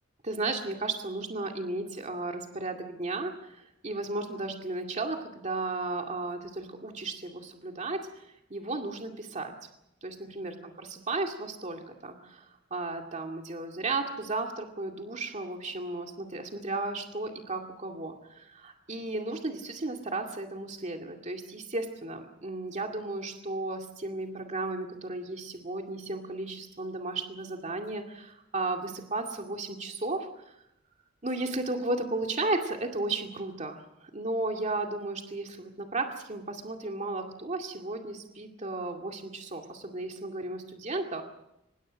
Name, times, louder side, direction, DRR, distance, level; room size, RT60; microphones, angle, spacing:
voice 1, 0.2-9.5 10.0-30.5 31.2-41.2, right 2 dB, 35° right, 3 dB, 2.3 m, -34 dB
25.5 x 20.0 x 6.4 m, 0.85 s
head